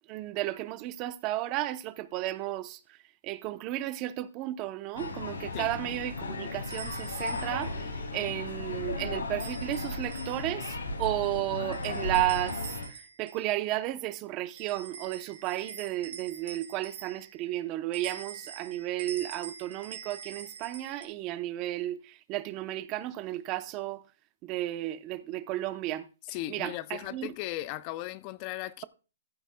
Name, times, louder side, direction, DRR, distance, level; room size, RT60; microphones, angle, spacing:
voice 1, 0.1-2.8 3.2-24.0 24.4-26.1 26.5-27.3, right 15 dB, 25° right, 0.7 m, -33 dB
sound 1, 5.0-12.9, left 3 dB, 85° left, 6.1 m, -35 dB
sound 2, 5.0-5.2 6.7-7.8 9.4-10.6 11.7-13.5 14.6-17.4 17.9-21.0, right 6 dB, 60° right, 3.1 m, -46 dB
voice 2, 26.2-28.8, left 16 dB, 30° left, 0.4 m, -37 dB
14.5 x 11.0 x 2.2 m
hypercardioid pair, 155°, 0 cm